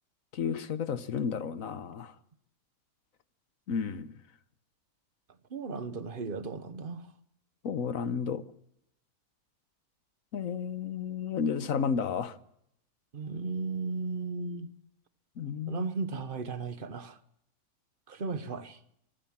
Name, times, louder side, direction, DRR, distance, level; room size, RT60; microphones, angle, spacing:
voice 1, 0.3-2.1 3.7-4.1 7.6-8.4 10.3-12.4 15.4-15.9, left 6 dB, 65° left, 1.4 m, -32 dB
voice 2, 5.5-7.1 13.1-14.7 15.7-17.2 18.1-18.8, right 4 dB, 40° right, 1.3 m, -35 dB
24.5 x 15.5 x 7.3 m
omnidirectional pair, 1.6 m